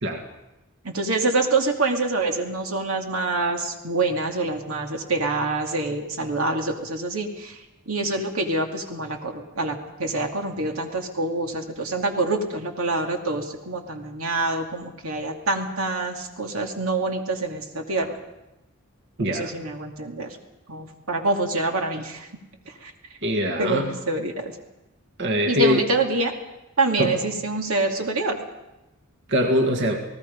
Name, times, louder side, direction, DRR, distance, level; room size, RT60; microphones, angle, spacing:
voice 1, 0.8-7.6 7.9-18.2 19.2-20.4 20.7-22.3 22.7-22.9 23.6-24.5 25.5-26.3 26.8-28.4, right 2 dB, 90° right, 3 dB, 2.5 m, -26 dB
voice 2, 19.2-19.5 23.2-23.9 25.2-25.8 27.0-27.2 29.3-30.1, equal, 60° right, 4 dB, 1.9 m, -22 dB
29.0 x 18.5 x 5.3 m, 0.96 s
head